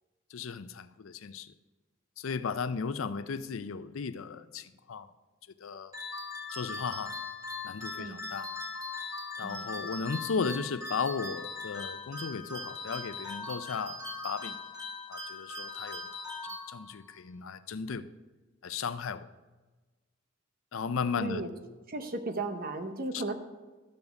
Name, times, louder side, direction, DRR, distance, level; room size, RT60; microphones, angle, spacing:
voice 1, 0.3-1.5 2.2-5.1 5.6-5.9 6.5-7.2 7.6-8.5 9.4-14.6 15.1-16.1 16.7-18.1 18.6-19.3 20.7-21.5, left 5 dB, 85° left, 0.5 m, -35 dB
sound 1, 5.9-17.1, left 3 dB, 20° right, 2.1 m, -40 dB
voice 2, 9.4-9.7 21.2-21.5 21.9-23.3, right 2 dB, 45° right, 1.0 m, -35 dB
13.0 x 7.2 x 5.3 m
head